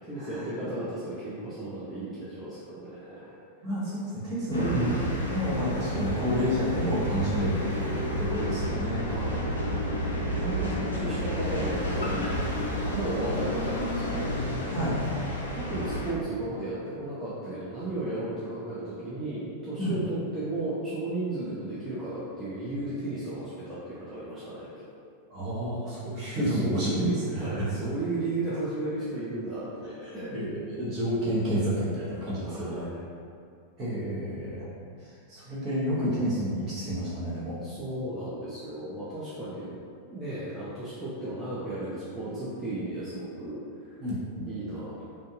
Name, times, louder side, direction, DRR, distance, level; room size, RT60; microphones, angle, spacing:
voice 1, 0.0-3.3 4.6-5.3 9.0-9.4 10.3-12.4 12.9-15.0 15.5-24.8 26.5-30.3 32.4-33.0 37.6-39.8 40.1-44.0 44.5-45.0, right 2 dB, 10° right, -11 dB, 0.5 m, -34 dB
voice 2, 3.6-9.0 10.1-10.3 14.7-14.9 19.8-20.0 25.3-27.0 27.3-27.7 30.1-32.9 33.8-34.7 35.3-37.6 44.0-44.8, equal, 30° right, -11 dB, 1.2 m, -30 dB
sound 1, 4.5-16.1, equal, 80° left, 0.4 m, -30 dB
2.6 x 2.5 x 2.5 m, 2.3 s
figure-of-eight pair, 90°, 0 cm